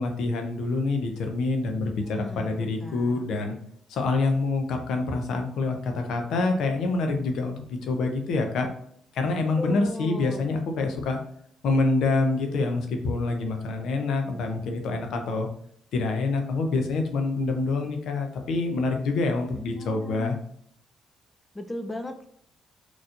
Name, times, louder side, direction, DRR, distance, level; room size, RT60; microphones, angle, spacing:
voice 1, 0.0-3.6 3.9-8.7 9.1-11.2 11.6-15.5 15.9-20.4, left 3 dB, 75° left, 4 dB, 0.7 m, -26 dB
voice 2, 2.0-2.5 2.8-3.2 9.6-10.5 19.6-20.4 21.5-22.3, left 1 dB, 20° left, 6 dB, 0.5 m, -36 dB
4.0 x 3.0 x 2.5 m, 0.66 s
hypercardioid pair, 50°, 0 cm